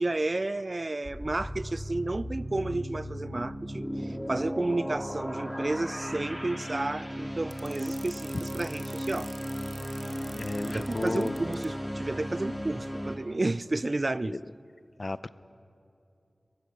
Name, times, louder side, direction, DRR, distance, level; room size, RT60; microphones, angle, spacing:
voice 1, 0.0-9.3 10.7-14.4, right 2 dB, 45° right, 0.4 m, -31 dB
sound 1, 1.0-13.2, equal, 5° left, 2.8 m, -36 dB
sound 2, 7.5-11.7, right 3 dB, 65° right, 1.1 m, -47 dB
voice 2, 10.3-11.4 14.2-14.4 15.0-15.3, left 2 dB, 50° left, 0.6 m, -33 dB
23.0 x 17.5 x 6.9 m
wide cardioid pair, 55°, 0 cm